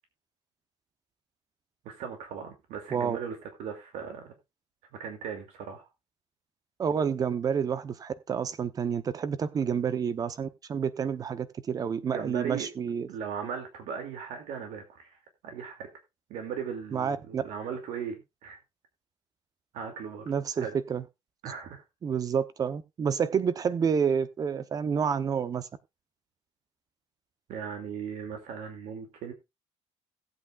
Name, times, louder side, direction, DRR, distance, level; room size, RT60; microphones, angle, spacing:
voice 1, 1.8-4.3 4.9-5.9 12.0-12.7 13.1-15.9 16.3-18.6 19.7-20.2 20.6-20.8 21.4-21.8 27.5-29.3, right 7 dB, 85° right, 2.5 m, -38 dB
voice 2, 6.8-13.1 16.9-17.4 20.3-21.0 22.0-25.7, right 7 dB, 30° right, 0.8 m, -29 dB
17.5 x 8.3 x 2.4 m
cardioid pair, 160°, 12 cm